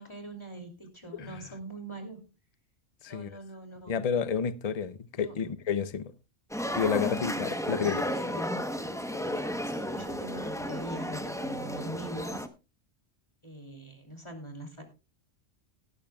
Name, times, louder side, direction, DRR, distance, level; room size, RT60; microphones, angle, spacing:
voice 1, 0.0-2.2 3.1-4.0 5.1-5.3 7.8-8.4 9.1-12.4 13.4-14.8, right 1 dB, 25° left, 2.8 m, -43 dB
voice 2, 3.0-3.4 3.9-6.1 6.7-8.0, left 7 dB, 40° left, 0.6 m, -30 dB
sound 1, 6.5-12.5, equal, 5° left, 0.8 m, -33 dB
17.5 x 12.5 x 2.3 m
omnidirectional pair, 1.3 m